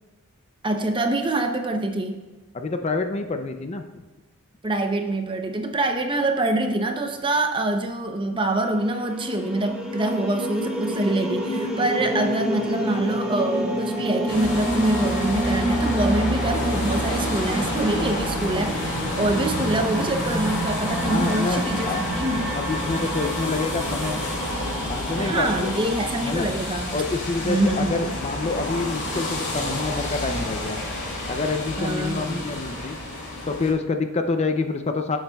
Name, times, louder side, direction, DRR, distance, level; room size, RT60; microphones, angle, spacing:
voice 1, 0.6-2.2 4.6-22.5 25.2-26.9 27.4-28.1 31.8-32.5, right 2 dB, 25° right, 5 dB, 0.7 m, -25 dB
voice 2, 2.5-4.0 21.0-22.0 22.5-24.2 24.9-25.7 26.2-26.5 26.9-30.8 31.3-33.0 33.5-35.2, left 3 dB, 30° left, 6 dB, 0.5 m, -27 dB
sound 1, 8.6-26.3, right 1 dB, 5° right, 1.5 m, -29 dB
sound 2, 14.3-33.7, left 1 dB, 55° left, 2.3 m, -29 dB
16.0 x 7.2 x 2.3 m, 1.2 s
head